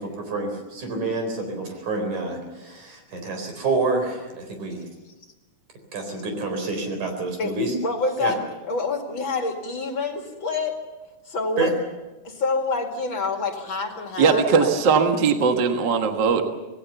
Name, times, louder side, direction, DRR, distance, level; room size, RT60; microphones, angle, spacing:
voice 1, 0.0-4.8 5.9-7.7 8.2-8.3 11.6-11.7, right 3 dB, 85° right, 5 dB, 5.5 m, -28 dB
voice 2, 7.8-8.4 8.7-10.8 11.2-11.7 12.2-14.8, left 3 dB, 45° left, 3 dB, 2.8 m, -27 dB
voice 3, 14.2-16.5, right 5 dB, 45° right, 5 dB, 1.8 m, -19 dB
26.5 x 18.5 x 7.0 m, 1.1 s
omnidirectional pair, 3.3 m